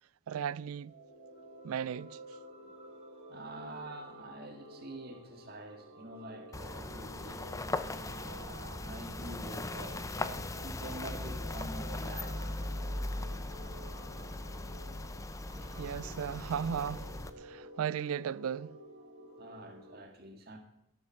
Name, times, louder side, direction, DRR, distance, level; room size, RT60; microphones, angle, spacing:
voice 1, 0.3-0.9 1.6-2.2 15.8-17.1 17.4-18.8, right 8 dB, 85° right, 0.4 m, -36 dB
sound 1, 0.7-20.0, right 1 dB, 65° right, 3.4 m, -52 dB
voice 2, 3.3-7.5 8.0-12.6 19.4-20.6, right 1 dB, 45° right, 1.9 m, -47 dB
sound 2, 6.5-17.3, left 2 dB, 15° left, 0.5 m, -39 dB
13.5 x 7.6 x 6.4 m
head